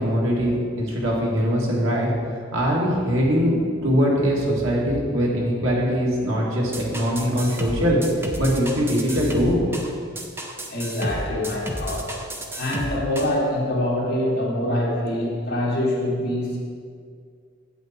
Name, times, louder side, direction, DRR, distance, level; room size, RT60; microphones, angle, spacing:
voice 1, 0.0-2.1 2.5-8.0 8.4-9.6, equal, 85° right, -3 dB, 2.0 m, -22 dB
sound 1, 6.7-13.4, right 1 dB, 10° right, 0.6 m, -32 dB
voice 2, 10.7-12.1 12.6-16.6, left 1 dB, 50° left, -5 dB, 2.2 m, -25 dB
8.1 x 7.9 x 4.4 m, 2.1 s
head